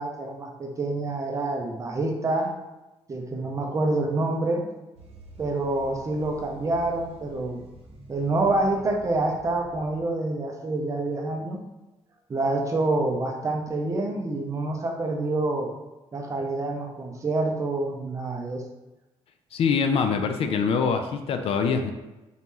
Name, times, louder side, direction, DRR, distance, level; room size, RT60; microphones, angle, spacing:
voice 1, 0.0-2.5 3.1-4.7 5.4-7.6 8.1-11.6 12.3-15.7 16.1-18.6, right 2 dB, 30° right, 2 dB, 0.6 m, -27 dB
sound 1, 5.0-10.0, right 1 dB, 65° right, 0.9 m, -48 dB
voice 2, 19.5-21.9, left 6 dB, 60° left, 7 dB, 0.4 m, -24 dB
4.0 x 3.0 x 3.6 m, 1.0 s
cardioid pair, 145°, 11 cm